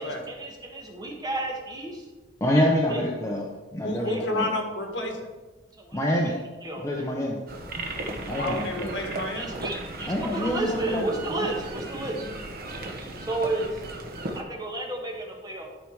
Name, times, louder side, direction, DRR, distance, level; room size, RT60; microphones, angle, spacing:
voice 1, 0.0-2.0 2.9-3.0 4.0-4.2 5.8-6.0 6.6-7.2 9.3-12.4 13.2-13.7 14.3-15.7, right 2 dB, 20° right, 0 dB, 1.5 m, -32 dB
voice 2, 2.4-3.5 3.7-4.5 5.9-6.4 6.8-7.4 8.3-8.9 10.0-11.1 11.4-11.5, left 1 dB, 15° left, -2 dB, 0.9 m, -26 dB
voice 3, 3.8-5.2 8.3-9.5, left 1 dB, 70° left, 2 dB, 1.7 m, -30 dB
sound 1, 7.5-14.4, right 2 dB, 55° right, 1.1 m, -36 dB
11.5 x 5.0 x 4.8 m, 1.3 s
head